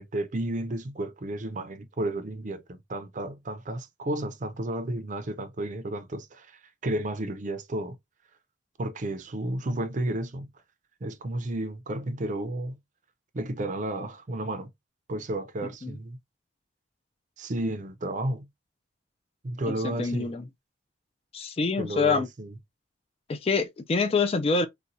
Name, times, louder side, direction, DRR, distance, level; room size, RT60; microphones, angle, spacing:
voice 1, 0.0-8.0 8.8-10.5 11.0-12.8 13.3-14.7 15.1-16.2 17.4-18.5 19.4-20.3 21.8-22.5, right 1 dB, 40° right, 0.5 m, -32 dB
voice 2, 19.7-20.4 21.3-22.3 23.3-24.7, left 4 dB, 30° left, 0.3 m, -26 dB
4.1 x 2.2 x 2.5 m
head